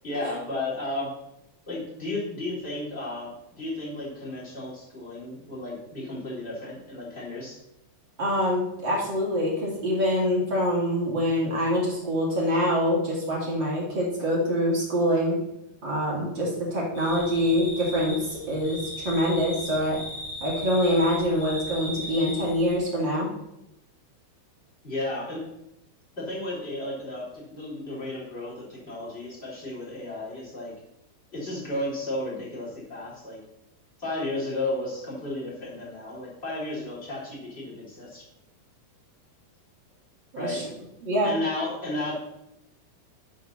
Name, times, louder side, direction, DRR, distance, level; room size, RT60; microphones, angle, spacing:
voice 1, 0.0-1.1 1.7-7.6 24.8-25.4 26.2-30.7 31.3-33.4 34.0-38.2 40.3-40.6 41.2-42.2, left 2 dB, 15° left, -7 dB, 3.5 m, -33 dB
voice 2, 8.2-15.4 15.8-20.0 20.4-23.3 40.3-40.6 41.0-41.3, equal, 35° right, -4 dB, 2.3 m, -25 dB
sound 1, 16.9-22.8, left 1 dB, 60° left, 4.6 m, -37 dB
10.0 x 5.7 x 6.4 m, 0.86 s
omnidirectional pair, 5.3 m